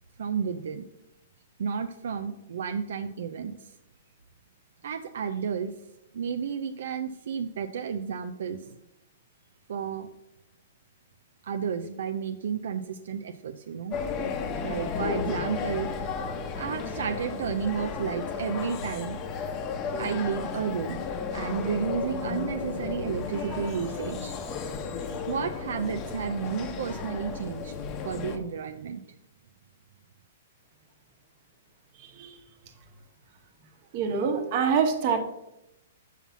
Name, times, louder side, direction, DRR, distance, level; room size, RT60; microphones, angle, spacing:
voice 1, 0.2-0.8 1.6-3.7 4.8-5.7 6.1-8.7 9.7-10.1 11.4-14.0 14.6-16.1 16.6-19.2 20.0-21.0 21.3-24.3 25.3-27.7 28.0-29.0, right 7 dB, 75° right, 8 dB, 0.5 m, -32 dB
sound 1, 13.9-28.4, left 5 dB, 30° left, 0.9 m, -34 dB
voice 2, 33.9-35.2, right 6 dB, 40° right, 6 dB, 1.3 m, -25 dB
5.7 x 5.7 x 6.0 m, 0.87 s
hypercardioid pair, 150°, 0 cm